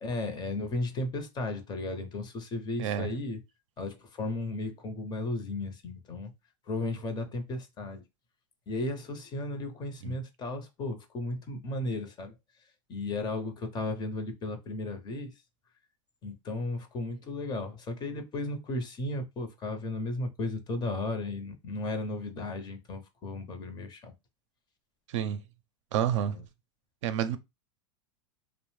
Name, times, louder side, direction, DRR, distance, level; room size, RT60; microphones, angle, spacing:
voice 1, 0.0-3.4 3.8-6.3 6.7-8.0 8.7-12.3 12.9-15.4 16.2-24.1 26.3-26.4, left 2 dB, 25° left, 0.6 m, -35 dB
voice 2, 25.9-26.4 27.0-27.4, right 10 dB, 75° right, 0.4 m, -29 dB
2.5 x 2.0 x 3.1 m
supercardioid pair, 125°, 16 cm